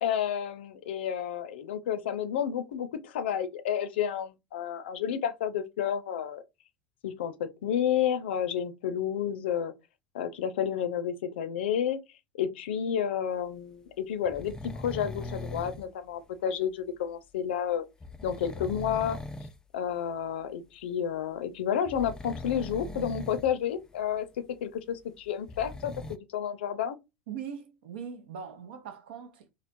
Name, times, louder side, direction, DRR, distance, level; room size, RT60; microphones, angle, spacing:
voice 1, 0.0-6.4 7.0-9.7 10.1-12.0 12.4-17.8 18.2-19.2 19.7-24.3 24.6-27.0, left 9 dB, 65° left, 0.5 m, -31 dB
sound 1, 14.3-15.9 18.0-19.6 19.9-20.1 21.9-23.5 23.8-23.9 25.3-26.2, left 2 dB, 10° left, 0.3 m, -40 dB
voice 2, 27.3-29.5, right 7 dB, 60° right, 0.7 m, -41 dB
3.1 x 2.9 x 2.5 m
figure-of-eight pair, 75°, 6 cm